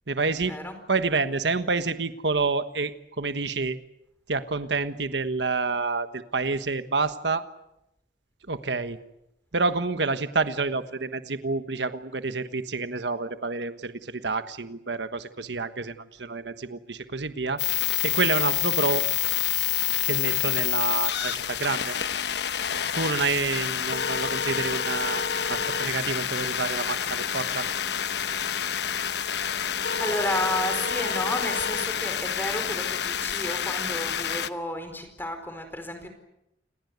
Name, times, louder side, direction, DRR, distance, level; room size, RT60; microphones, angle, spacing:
voice 1, 0.1-0.5 0.9-3.8 4.3-7.4 8.5-9.0 9.5-17.6 18.0-19.1 20.0-21.9 22.9-27.7, right 4 dB, 85° right, 10 dB, 1.3 m, -28 dB
sound 1, 17.6-34.5, left 9 dB, 75° left, 1.0 m, -28 dB
voice 2, 30.0-36.1, left 1 dB, 10° left, 7 dB, 4.6 m, -32 dB
28.5 x 20.5 x 8.2 m, 0.86 s
head